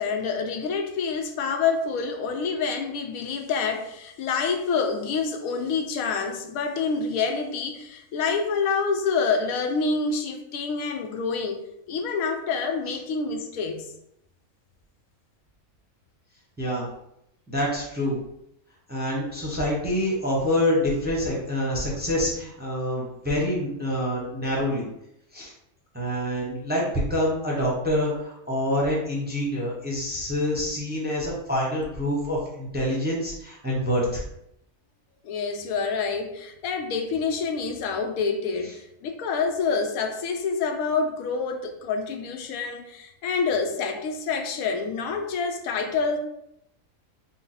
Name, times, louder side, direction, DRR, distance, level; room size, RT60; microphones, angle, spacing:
voice 1, 0.0-13.9 35.2-46.2, left 5 dB, 85° left, 4 dB, 1.0 m, -27 dB
voice 2, 17.5-18.2 18.9-24.8 25.3-25.5 25.9-34.2, left 1 dB, 10° right, -4 dB, 0.6 m, -26 dB
3.9 x 2.2 x 4.0 m, 0.79 s
omnidirectional pair, 1.4 m